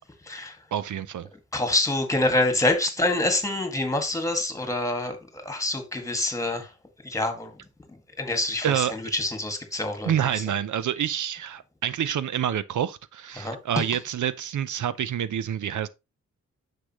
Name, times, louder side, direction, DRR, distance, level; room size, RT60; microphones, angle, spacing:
voice 1, 0.7-1.3 8.6-8.9 10.0-15.9, right 10 dB, 80° right, 0.7 m, -27 dB
voice 2, 1.5-6.7 7.0-7.5 8.2-10.1 13.4-13.6, left 2 dB, 10° left, 2.0 m, -26 dB
10.0 x 6.7 x 3.1 m
wide cardioid pair, 145°, 30 cm